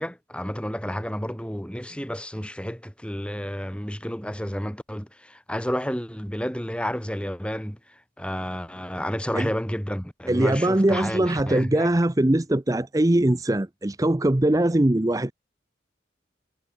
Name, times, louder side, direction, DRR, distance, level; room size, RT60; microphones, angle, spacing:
voice 1, 0.0-11.9, equal, 5° left, 2.7 m, -31 dB
voice 2, 10.3-15.3, right 1 dB, 20° right, 0.6 m, -21 dB
head